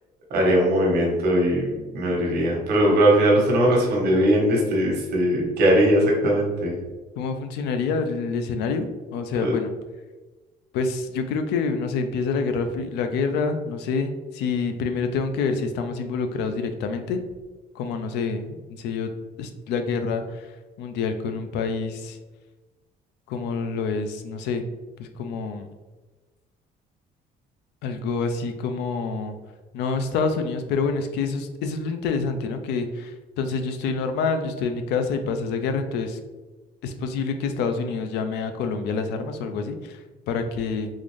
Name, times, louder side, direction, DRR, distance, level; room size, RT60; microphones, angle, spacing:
voice 1, 0.3-6.8 9.4-9.5, equal, 70° right, -2 dB, 1.1 m, -20 dB
voice 2, 7.2-9.7 10.7-17.2 17.7-19.1 19.4-22.2 23.3-24.7 25.0-25.7 27.8-29.4 29.7-36.2 36.8-40.9, left 4 dB, 85° left, 7 dB, 0.5 m, -27 dB
3.8 x 2.5 x 3.2 m, 1.2 s
cardioid pair, 110°, 17 cm